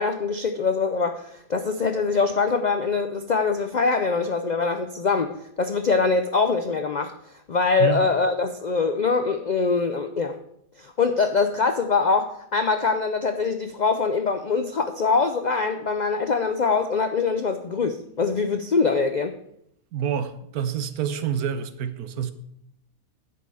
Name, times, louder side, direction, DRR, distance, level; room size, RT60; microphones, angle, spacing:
voice 1, 0.0-7.1 7.5-10.4 10.8-19.4, left 4 dB, 70° left, 8 dB, 0.4 m, -23 dB
voice 2, 19.9-22.3, right 8 dB, 80° right, 11 dB, 1.3 m, -27 dB
9.7 x 5.4 x 7.5 m, 0.76 s
omnidirectional pair, 1.6 m